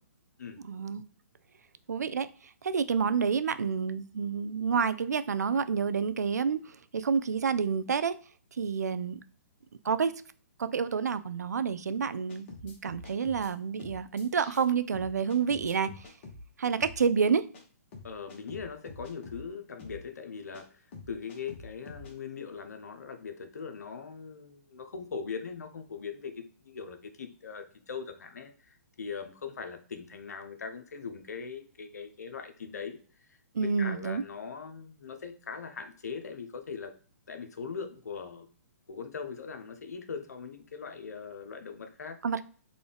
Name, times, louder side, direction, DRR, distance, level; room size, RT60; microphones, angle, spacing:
voice 1, 0.6-1.0 1.9-2.3 2.6-8.1 8.6-9.2 9.8-10.1 10.6-15.9 16.6-17.4 33.5-34.2 42.2-42.4, right 6 dB, 85° right, 13 dB, 0.4 m, -29 dB
sound 1, 12.3-13.5 13.8-14.6 14.9-16.4 16.8-17.0 17.5-17.6 17.9-19.4 19.8-20.0 20.5-20.6 20.9-22.1, left 3 dB, 45° left, 1.1 m, -46 dB
voice 2, 18.0-33.0 33.6-36.9 37.3-38.5 38.9-42.2, left 5 dB, 75° left, 7 dB, 0.7 m, -40 dB
3.8 x 2.3 x 3.4 m, 0.43 s
hypercardioid pair, 135°, 9 cm